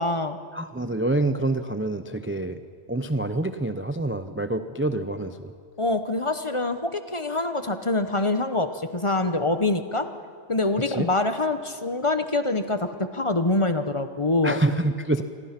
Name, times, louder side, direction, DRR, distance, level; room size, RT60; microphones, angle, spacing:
voice 1, 0.0-0.4 5.8-10.1 10.5-14.6, left 2 dB, 30° left, 9 dB, 0.9 m, -25 dB
voice 2, 0.5-2.6 2.9-5.5 10.8-11.1 14.4-15.2, right 2 dB, 15° right, 10 dB, 0.5 m, -26 dB
28.0 x 22.0 x 5.9 m, 2.1 s
omnidirectional pair, 1.2 m